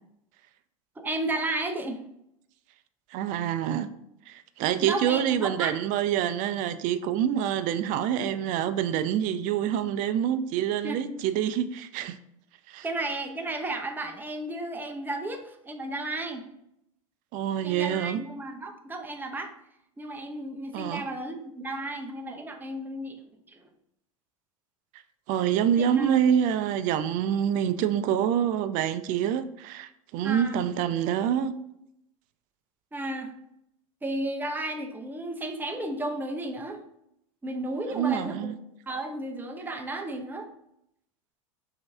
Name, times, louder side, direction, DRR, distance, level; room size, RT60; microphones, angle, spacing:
voice 1, 1.0-2.0 4.8-5.7 10.8-11.1 12.8-16.4 17.6-19.5 20.0-23.2 23.5-23.7 25.8-26.3 30.2-30.6 32.9-33.3 34.0-36.8 37.4-38.4 38.9-40.5, right 2 dB, 10° right, 0.6 m, -33 dB
voice 2, 3.1-3.9 4.3-12.2 12.7-12.9 17.3-18.2 20.7-21.0 25.3-31.6 37.9-38.5, right 9 dB, 50° right, 0.4 m, -26 dB
5.2 x 2.7 x 3.5 m
hypercardioid pair, 95°, 17 cm